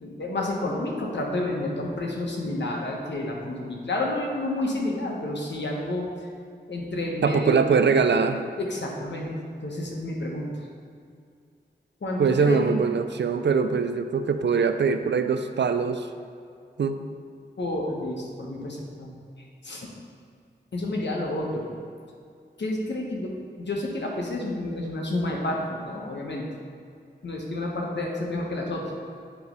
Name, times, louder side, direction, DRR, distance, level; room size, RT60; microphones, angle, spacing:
voice 1, 0.0-6.1 6.7-7.6 8.6-9.3 9.6-10.7 12.0-12.8 17.6-19.1 19.6-19.9 20.7-21.7 22.6-26.4 27.2-28.8, left 1 dB, 70° left, -1 dB, 1.3 m, -30 dB
voice 2, 7.2-8.4 12.2-16.1 16.8-17.0, right 5 dB, 70° right, 9 dB, 0.5 m, -22 dB
9.4 x 3.2 x 5.3 m, 2.3 s
cardioid pair, 45°, 19 cm